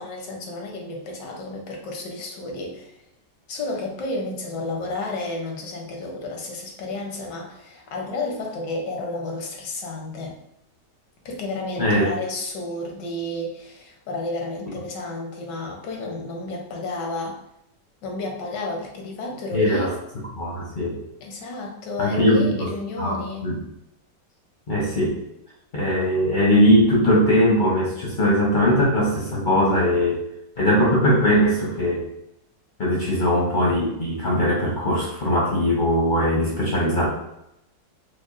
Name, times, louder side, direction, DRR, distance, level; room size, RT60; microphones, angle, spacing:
voice 1, 0.0-2.9 3.5-10.4 11.2-17.4 18.0-19.9 21.2-23.6, left 2 dB, 80° left, 1 dB, 1.5 m, -31 dB
voice 2, 19.5-19.9 20.4-21.0 22.0-22.7 23.0-23.6 24.7-25.2 25.7-30.2 30.6-32.0 32.8-37.1, equal, 45° left, -4 dB, 0.7 m, -20 dB
5.1 x 2.2 x 2.5 m, 0.82 s
omnidirectional pair, 1.8 m